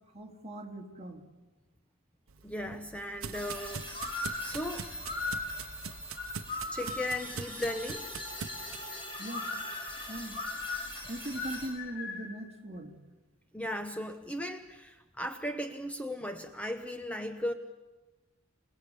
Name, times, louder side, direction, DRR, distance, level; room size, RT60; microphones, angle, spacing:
voice 1, 0.1-1.2 9.2-9.5 10.1-10.4 11.1-13.0, right 1 dB, 30° right, 1 dB, 2.8 m, -40 dB
sound 1, 2.3-8.9, right 6 dB, 70° right, 0.9 m, -43 dB
voice 2, 2.4-4.9 6.7-8.1 13.5-17.5, left 1 dB, 5° left, 6 dB, 1.0 m, -37 dB
sound 2, 3.3-11.7, left 1 dB, 25° left, 6.0 m, -43 dB
sound 3, 3.9-7.3 9.3-12.4, left 3 dB, 50° left, 4.6 m, -38 dB
28.5 x 19.0 x 8.4 m, 1.2 s
head